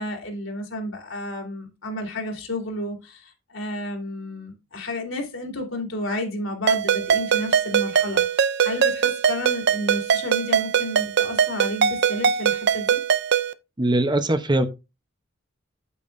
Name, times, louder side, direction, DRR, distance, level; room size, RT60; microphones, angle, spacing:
voice 1, 0.0-13.0, left 1 dB, 75° left, 3.2 m, -31 dB
Ringtone, 6.7-13.5, right 7 dB, 60° right, 0.5 m, -22 dB
voice 2, 13.8-14.7, right 1 dB, 20° right, 0.8 m, -21 dB
8.8 x 8.4 x 2.6 m
head